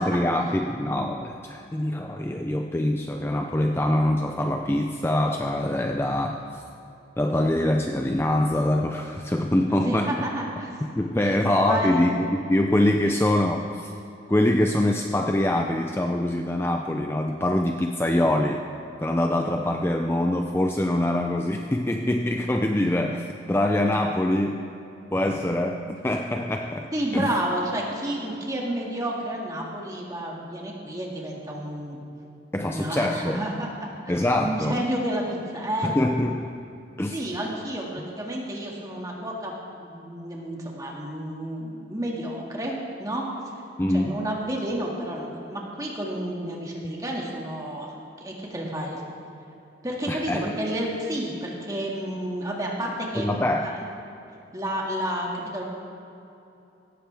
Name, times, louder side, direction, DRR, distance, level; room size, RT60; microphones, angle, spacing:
voice 1, 0.0-6.6 7.2-10.1 11.0-13.9 14.3-18.6 19.0-24.7 25.1-27.3 32.5-33.4 34.1-34.8 35.8-36.5 37.0-37.2 43.8-44.2 50.1-50.5 53.2-53.7, left 1 dB, 15° left, 3 dB, 0.5 m, -24 dB
voice 2, 9.8-10.8 11.2-12.2 13.0-13.2 22.8-23.1 26.0-26.2 26.9-32.0 32.6-35.9 37.1-39.5 39.8-43.3 43.9-49.0 49.8-53.7 54.5-55.6, right 1 dB, 20° right, -2 dB, 2.0 m, -31 dB
17.5 x 14.5 x 3.5 m, 2.8 s
head